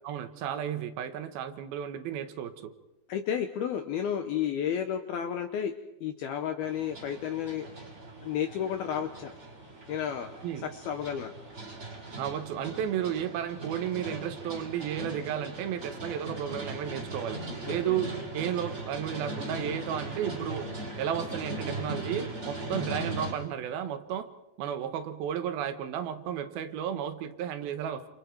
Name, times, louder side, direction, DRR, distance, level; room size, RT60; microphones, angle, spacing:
voice 1, 0.0-2.7 10.4-10.6 12.2-20.7 21.0-24.3 24.6-28.1, right 9 dB, 70° right, 8 dB, 2.5 m, -33 dB
voice 2, 3.1-5.7 6.0-7.7 8.2-9.3 9.9-11.3 17.7-18.0, left 9 dB, 80° left, 7 dB, 2.2 m, -32 dB
sound 1, 6.6-23.3, right 2 dB, 15° right, 3.0 m, -39 dB
29.0 x 27.5 x 4.6 m, 0.96 s
omnidirectional pair, 5.6 m